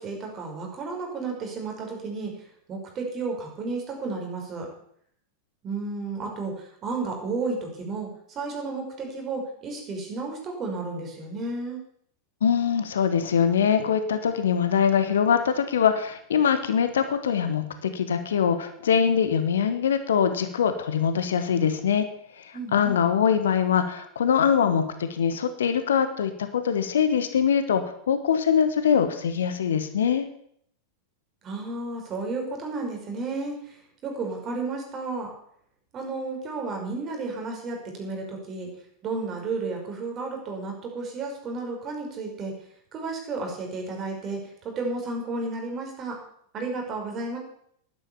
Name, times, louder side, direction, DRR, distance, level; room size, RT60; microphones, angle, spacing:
voice 1, 0.0-4.7 5.6-11.8 22.5-23.0 31.4-35.3 35.9-38.7 39.0-42.5 42.9-46.2 46.5-47.4, right 3 dB, 30° right, 2 dB, 5.3 m, -32 dB
voice 2, 12.4-22.0 22.4-30.3, left 7 dB, 65° left, 10 dB, 1.5 m, -23 dB
12.5 x 11.5 x 7.2 m, 0.67 s
figure-of-eight pair, 90°, 0 cm